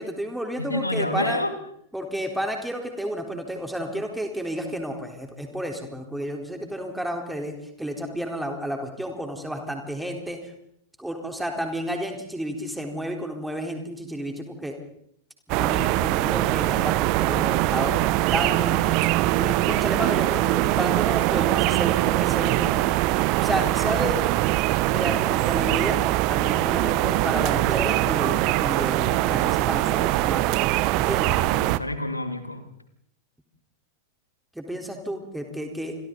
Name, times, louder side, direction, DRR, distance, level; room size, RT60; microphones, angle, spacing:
voice 1, 0.0-1.4 1.9-10.5 11.0-14.7 15.6-18.0 18.3-18.8 19.3-22.8 23.4-24.2 24.9-30.5 30.9-31.4 34.5-36.0, equal, 5° right, 3 dB, 4.1 m, -31 dB
voice 2, 0.6-1.5 31.4-32.6, left 1 dB, 85° left, 9 dB, 2.4 m, -28 dB
sound 1, 15.5-31.8, right 17 dB, 45° right, 0.9 m, -22 dB
29.0 x 23.5 x 4.1 m, 0.71 s
figure-of-eight pair, 90°, 0 cm